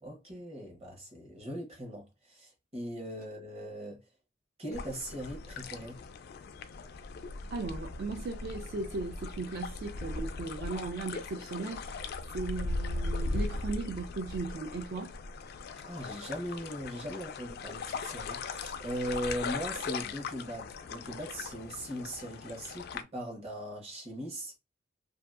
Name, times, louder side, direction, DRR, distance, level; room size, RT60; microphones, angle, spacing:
voice 1, 0.0-4.0 4.6-6.0 15.8-24.6, equal, 35° right, 0.9 m, -39 dB
sound 1, 4.7-23.0, left 3 dB, 55° left, 0.3 m, -39 dB
voice 2, 7.5-12.0 12.3-15.2, right 3 dB, 55° right, 0.4 m, -37 dB
2.6 x 2.3 x 2.3 m
head